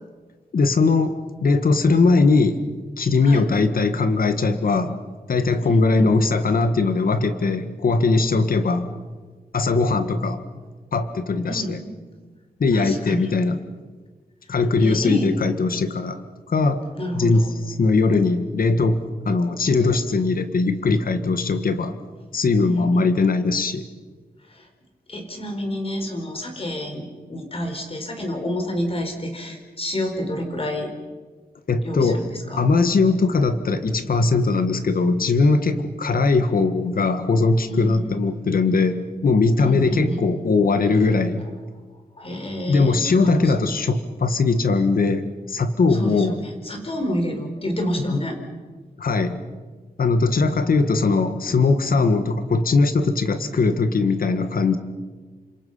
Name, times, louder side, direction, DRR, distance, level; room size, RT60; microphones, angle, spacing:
voice 1, 0.5-2.6 3.0-5.0 5.3-8.9 9.5-10.4 10.9-11.8 12.6-13.6 14.5-16.8 17.1-17.5 17.8-19.0 19.3-22.0 22.3-23.8 31.7-32.2 32.6-41.4 42.7-46.3 48.1-48.2 49.0-49.4 50.0-54.8, left 3 dB, 65° left, 9 dB, 1.8 m, -20 dB
voice 2, 5.6-6.1 11.4-11.8 12.7-13.3 14.5-15.3 17.0-17.5 22.6-23.4 24.5-24.7 25.1-30.9 31.8-32.7 37.6-38.1 39.6-40.3 41.7-41.8 42.2-43.7 45.9-48.4, equal, 35° left, 4 dB, 4.5 m, -29 dB
29.0 x 26.5 x 5.7 m, 1.4 s
wide cardioid pair, 140°, 16 cm